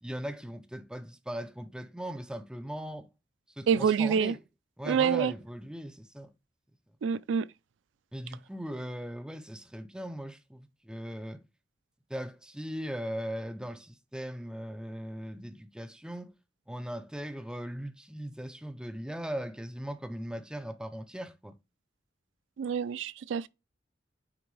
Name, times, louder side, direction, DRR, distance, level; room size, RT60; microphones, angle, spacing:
voice 1, 0.0-3.1 3.6-4.4 4.8-6.3 8.1-11.4 12.1-16.3 16.7-21.6, equal, 5° right, 0.5 m, -39 dB
voice 2, 3.7-4.3 4.8-5.3 7.0-7.5 22.6-23.5, right 7 dB, 80° right, 0.3 m, -26 dB
8.9 x 3.4 x 3.2 m
head